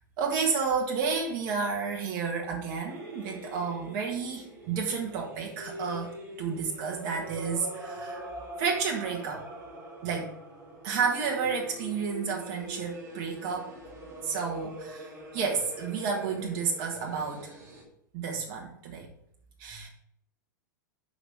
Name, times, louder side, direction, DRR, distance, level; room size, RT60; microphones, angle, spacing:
voice 1, 0.2-6.1 6.4-8.3 8.6-9.4 10.0-10.3 10.8-13.7 14.2-17.5 18.1-19.1 19.6-19.9, right 5 dB, 45° right, 0 dB, 1.6 m, -31 dB
sound 1, 2.8-17.8, right 1 dB, 25° right, 2.5 m, -43 dB
5.8 x 5.1 x 5.6 m, 0.71 s
figure-of-eight pair, 95°, 11 cm